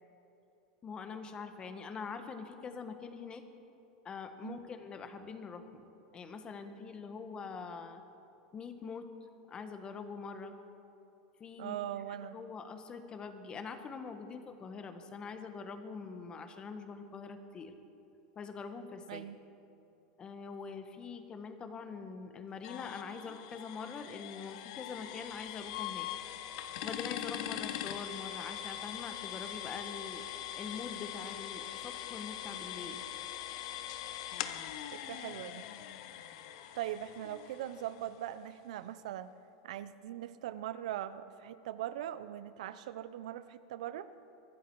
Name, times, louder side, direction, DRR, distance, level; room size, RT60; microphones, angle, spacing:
voice 1, 0.8-3.4 4.0-8.0 8.5-9.1 9.5-10.5 11.4-11.7 12.3-17.7 18.3-19.2 20.2-26.1 26.8-30.2 30.5-33.0, left 5 dB, 25° left, 8 dB, 1.3 m, -44 dB
voice 2, 11.6-12.4 19.1-19.4 34.9-35.6 36.7-39.3 39.6-44.1, right 12 dB, 80° right, 14 dB, 0.7 m, -41 dB
sound 1, 22.6-38.3, left 11 dB, 65° left, 0.9 m, -42 dB
23.5 x 12.5 x 4.7 m, 2.8 s
supercardioid pair, 135°, 4 cm